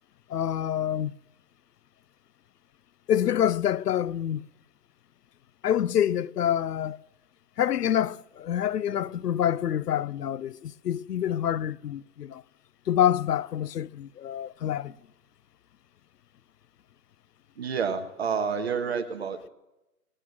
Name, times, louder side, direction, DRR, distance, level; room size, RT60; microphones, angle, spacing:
voice 1, 0.3-1.1 3.1-4.4 5.6-7.0 7.6-12.4 12.9-15.0, left 10 dB, 80° left, 0.6 m, -26 dB
voice 2, 17.6-19.5, right 6 dB, 40° right, 1.2 m, -29 dB
18.0 x 8.8 x 7.5 m
hypercardioid pair, 160°, 47 cm